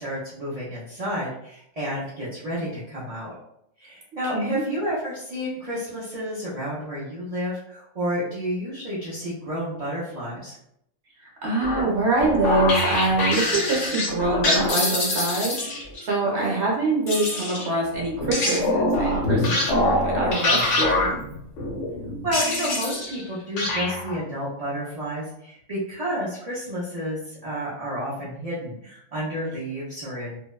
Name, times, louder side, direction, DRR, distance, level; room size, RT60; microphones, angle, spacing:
voice 1, 0.0-3.3 3.8-10.5 16.4-16.6 22.2-30.4, equal, 80° right, -9 dB, 0.3 m, -30 dB
voice 2, 11.2-21.1, right 2 dB, 55° right, -2 dB, 1.0 m, -25 dB
sound 1, 11.6-16.0 17.1-23.3 23.6-24.2, left 2 dB, 65° left, 0.9 m, -24 dB
2.6 x 2.1 x 2.3 m, 0.75 s
omnidirectional pair, 1.5 m